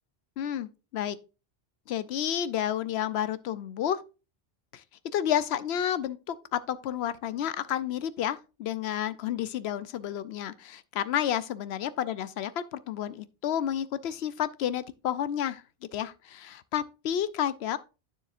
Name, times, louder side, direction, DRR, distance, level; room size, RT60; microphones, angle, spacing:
voice 1, 0.4-1.2 1.9-4.0 4.7-4.8 5.1-15.6 15.9-17.8, left 10 dB, 85° left, 0.8 m, -31 dB
9.4 x 6.9 x 2.5 m
omnidirectional pair, 1.0 m